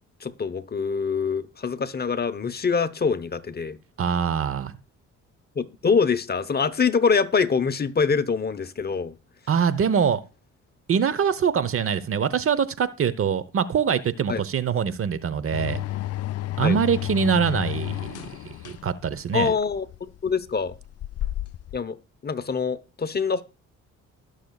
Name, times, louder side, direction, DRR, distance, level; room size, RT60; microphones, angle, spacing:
voice 1, 0.2-3.8 5.5-9.1 14.3-14.4 16.6-16.8 19.3-20.8 21.7-23.4, left 5 dB, 30° left, 0.9 m, -25 dB
voice 2, 4.0-4.7 9.5-10.2 10.9-15.8 16.6-18.3 18.6-19.5, right 7 dB, 45° right, 0.9 m, -24 dB
sound 1, 15.5-21.8, left 14 dB, 55° left, 0.5 m, -32 dB
20.0 x 6.7 x 2.4 m
cardioid pair, 90°, 30 cm